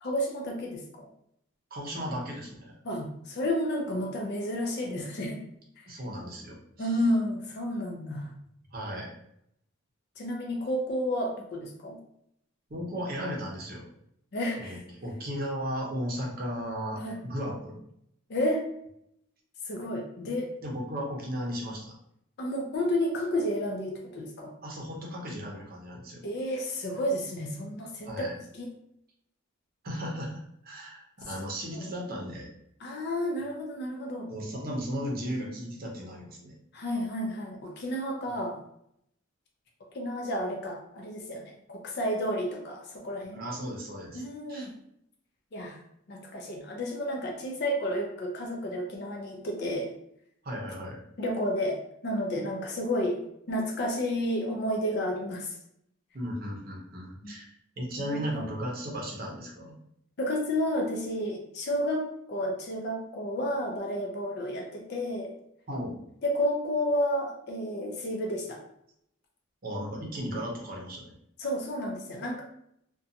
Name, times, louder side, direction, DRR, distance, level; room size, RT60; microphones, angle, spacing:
voice 1, 0.0-1.1 2.8-5.5 6.8-8.3 10.2-12.0 14.3-14.8 17.0-17.2 18.3-18.7 19.7-20.5 22.4-24.5 26.2-28.1 28.6-28.7 31.7-31.9 32.8-34.3 36.7-38.6 39.9-43.4 44.1-44.7 45.5-45.8 46.1-49.9 51.2-55.6 57.2-57.3 58.1-58.5 60.2-65.3 66.2-68.6 71.4-72.4, equal, 55° left, 1 dB, 0.4 m, -31 dB
voice 2, 1.7-2.8 5.9-7.0 8.7-9.1 12.7-13.9 14.6-17.8 20.6-22.0 24.6-26.3 28.0-28.4 29.8-32.5 34.3-36.5 43.3-44.2 44.5-44.7 50.4-51.0 56.1-59.8 65.7-66.0 69.6-71.1, equal, 45° right, -1 dB, 0.6 m, -35 dB
2.6 x 2.2 x 2.6 m, 0.73 s
head